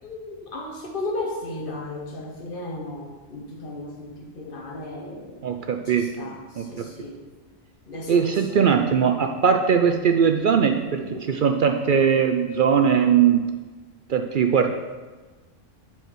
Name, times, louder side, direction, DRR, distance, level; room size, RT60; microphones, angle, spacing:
voice 1, 0.0-5.4 5.8-7.2 7.9-8.6 11.0-11.3, left 2 dB, 45° left, 0 dB, 1.4 m, -35 dB
voice 2, 5.4-6.9 8.1-11.0 11.3-13.5 14.1-14.7, right 7 dB, 60° right, 5 dB, 0.5 m, -20 dB
7.9 x 4.7 x 6.2 m, 1.3 s
omnidirectional pair, 1.3 m